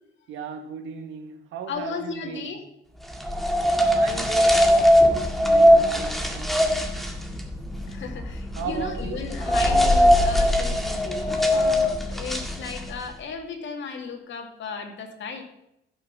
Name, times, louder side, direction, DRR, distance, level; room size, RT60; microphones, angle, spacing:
voice 1, 0.3-2.7 3.9-6.9 8.6-9.4, right 6 dB, 85° right, 5 dB, 2.0 m, -37 dB
voice 2, 1.7-2.6 7.7-15.4, left 5 dB, 70° left, 3 dB, 2.5 m, -35 dB
sound 1, 3.1-13.1, equal, ahead, 2.0 m, -21 dB
15.0 x 6.6 x 6.2 m, 0.81 s
cardioid pair, 90°, 20 cm